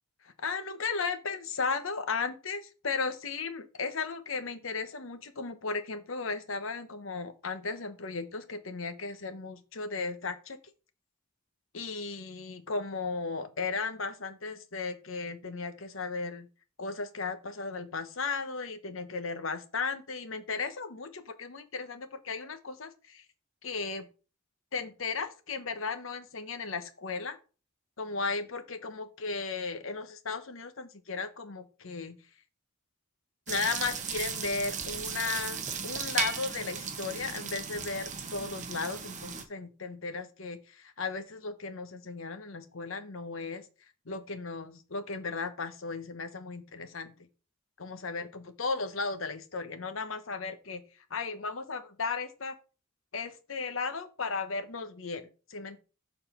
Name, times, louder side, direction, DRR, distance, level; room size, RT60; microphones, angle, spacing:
voice 1, 0.4-10.6 11.7-16.5 16.8-23.2 23.6-24.0 24.7-27.4 28.0-32.1 33.5-43.6 44.1-47.1 47.8-50.8 51.1-52.5 53.1-55.8, left 4 dB, 75° left, 9 dB, 1.0 m, -35 dB
sound 1, 33.5-39.4, right 6 dB, 40° right, 1.0 m, -36 dB
6.9 x 4.1 x 5.5 m, 0.34 s
head